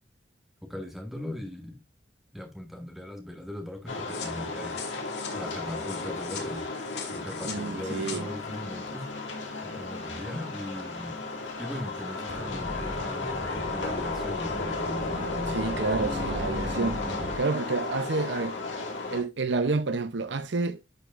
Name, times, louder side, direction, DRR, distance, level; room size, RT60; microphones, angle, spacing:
voice 1, 0.6-1.8 2.3-4.8 5.3-6.7 7.1-9.1 9.6-11.2 11.6-14.6, left 1 dB, ahead, 1.7 m, -39 dB
sound 1, 3.9-19.2, left 3 dB, 90° left, 2.3 m, -34 dB
sound 2, 4.1-8.2, left 7 dB, 65° left, 2.0 m, -42 dB
voice 2, 7.4-8.3 15.5-18.6 19.1-20.8, right 3 dB, 75° right, 0.7 m, -29 dB
sound 3, 12.2-17.4, equal, 35° right, 2.6 m, -36 dB
11.0 x 5.0 x 2.5 m
head